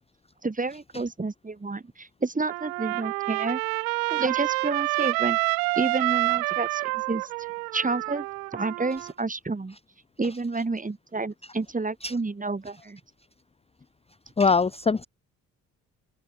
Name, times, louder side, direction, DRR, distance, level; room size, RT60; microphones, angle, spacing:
voice 1, 0.4-3.6 4.1-5.4 5.8-7.3 7.7-8.3 8.5-9.8 10.2-13.0, right 3 dB, 20° right, 2.1 m, -30 dB
Trumpet, 2.5-9.1, right 28 dB, 80° right, 1.1 m, -28 dB
voice 2, 14.4-15.1, left 4 dB, 15° left, 0.7 m, -22 dB
open air
hypercardioid pair, 50°, 41 cm